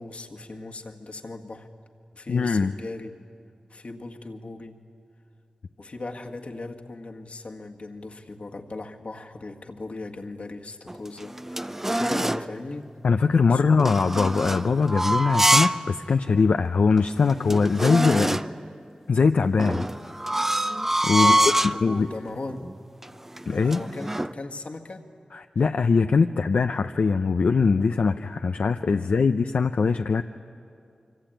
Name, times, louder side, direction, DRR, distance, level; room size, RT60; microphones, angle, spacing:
voice 1, 0.0-1.7 2.1-3.1 3.7-4.8 5.8-12.9 13.5-13.7 21.1-22.7 23.5-25.1 29.0-29.2, left 2 dB, 60° left, 3 dB, 1.8 m, -38 dB
voice 2, 2.3-2.7 13.0-18.4 19.1-19.9 21.0-21.4 21.6-22.1 23.5-23.8 25.3-30.2, left 4 dB, 75° left, 7 dB, 0.6 m, -22 dB
sound 1, 10.9-12.5 13.8-15.9 16.3-16.4 17.0-17.1 17.3-18.6 19.6-21.8 22.5-22.8 23.0-24.3, right 1 dB, 15° right, 0.6 m, -25 dB
25.5 x 24.5 x 9.0 m, 2.5 s
wide cardioid pair, 70°, 2 cm